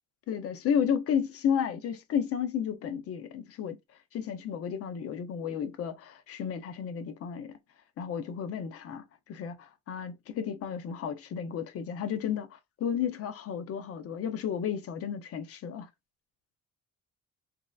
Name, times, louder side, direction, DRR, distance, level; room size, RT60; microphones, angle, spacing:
voice 1, 0.3-3.8 4.1-7.6 8.0-9.0 9.3-15.9, left 8 dB, 55° left, 0.6 m, -32 dB
3.0 x 2.8 x 2.2 m
cardioid pair, 145°, 29 cm